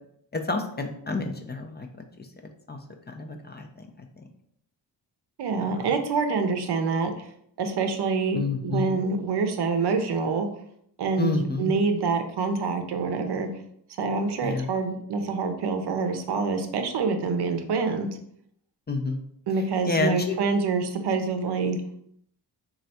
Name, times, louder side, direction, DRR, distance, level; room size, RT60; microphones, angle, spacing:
voice 1, 0.3-1.9 2.7-2.8 3.1-3.9 4.2-4.3 5.8-5.9 8.3-8.9 11.2-11.7 14.4-14.7 18.9-19.2 19.9-20.3, left 3 dB, 25° left, 4 dB, 0.5 m, -29 dB
voice 2, 5.4-7.3 7.6-10.5 11.0-13.5 14.0-18.1 19.5-21.8, right 4 dB, 65° right, 6 dB, 0.6 m, -26 dB
3.1 x 2.4 x 4.1 m, 0.69 s
cardioid pair, 70°, 42 cm